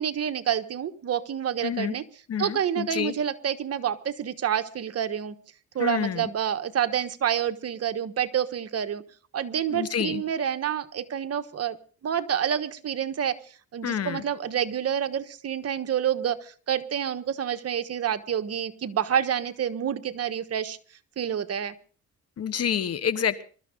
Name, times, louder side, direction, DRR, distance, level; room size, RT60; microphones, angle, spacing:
voice 1, 0.0-2.0 2.4-5.3 5.7-9.0 9.3-11.8 12.0-13.4 13.7-20.8 21.2-21.7, right 9 dB, 55° right, 9 dB, 1.3 m, -28 dB
voice 2, 1.6-1.9 2.3-3.2 5.8-6.3 9.7-10.2 13.8-14.2 22.4-23.4, left 8 dB, 55° left, 14 dB, 1.3 m, -28 dB
23.0 x 13.0 x 3.8 m, 0.41 s
cardioid pair, 90°, 30 cm